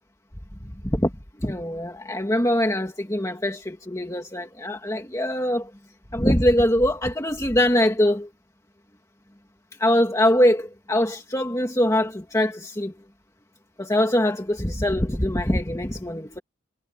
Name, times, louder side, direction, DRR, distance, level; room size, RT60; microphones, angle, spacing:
voice 1, 1.4-5.7 6.1-8.3 9.8-12.9 13.8-16.4, left 1 dB, 15° left, 1.9 m, -23 dB
head